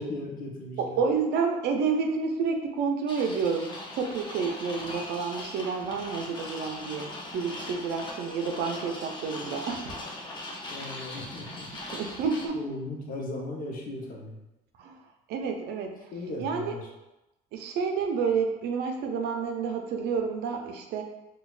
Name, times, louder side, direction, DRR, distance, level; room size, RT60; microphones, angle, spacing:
voice 1, 0.0-1.0 10.7-11.7 12.5-14.4 16.1-16.9, left 2 dB, 55° left, -1 dB, 0.8 m, -37 dB
voice 2, 0.8-9.9 11.7-12.6 14.8-15.0 15.3-16.1 16.4-16.7 17.5-21.0, right 5 dB, 75° right, 3 dB, 0.5 m, -29 dB
sound 1, 3.1-12.5, left 2 dB, 25° left, 0.6 m, -40 dB
4.1 x 2.3 x 2.4 m, 0.98 s
cardioid pair, 110°, 17 cm